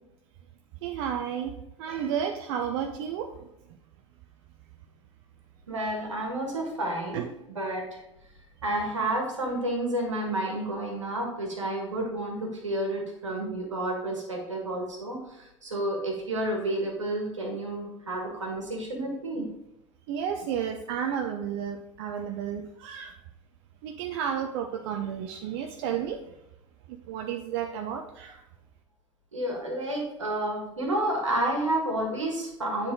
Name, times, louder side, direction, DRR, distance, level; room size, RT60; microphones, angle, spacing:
voice 1, 0.8-1.5 1.8-3.3 7.1-7.2 20.1-23.1 23.8-26.2 27.1-28.4, right 8 dB, 55° right, 5 dB, 0.6 m, -32 dB
voice 2, 5.7-8.0 8.6-19.4 29.3-32.9, right 1 dB, 80° right, 1 dB, 1.6 m, -30 dB
9.6 x 4.0 x 3.7 m, 0.86 s
figure-of-eight pair, 70°, 16 cm